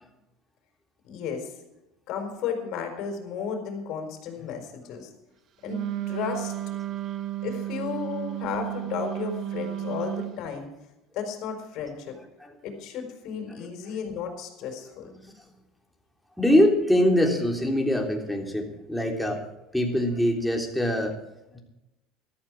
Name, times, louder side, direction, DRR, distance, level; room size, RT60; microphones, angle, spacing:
voice 1, 1.0-1.5 2.1-5.1 5.6-6.5 7.4-10.7 11.1-12.1 12.6-15.1, left 6 dB, 60° left, 5 dB, 4.4 m, -33 dB
Wind instrument woodwind instrument, 5.6-10.4, right 13 dB, 50° right, 1.4 m, -33 dB
voice 2, 13.5-14.0 15.2-15.3 16.4-19.4 19.7-21.2 21.5-21.6, equal, 5° left, 1 dB, 3.5 m, -24 dB
14.0 x 13.0 x 4.9 m, 0.94 s
hypercardioid pair, 85°, 0 cm